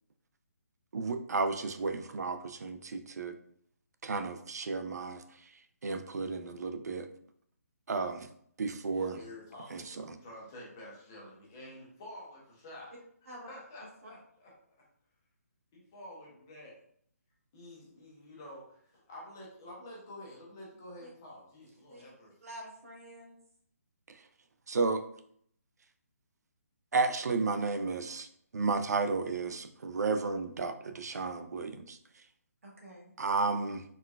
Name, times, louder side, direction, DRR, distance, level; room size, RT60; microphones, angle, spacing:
voice 1, 0.9-3.4 4.0-5.5 5.8-7.1 7.9-8.3 8.6-9.2 9.7-10.2 24.7-25.0 26.9-28.3 28.5-32.0 33.2-33.8, right 4 dB, 85° right, 8 dB, 0.4 m, -32 dB
voice 2, 8.9-12.9 13.2-14.5 15.7-16.8 17.5-22.3, left 1 dB, 10° left, -4 dB, 0.5 m, -49 dB
voice 3, 22.4-23.4 32.6-33.1, right 1 dB, 60° right, -2 dB, 1.1 m, -48 dB
4.1 x 2.2 x 2.2 m, 0.65 s
hypercardioid pair, 180°, 9 cm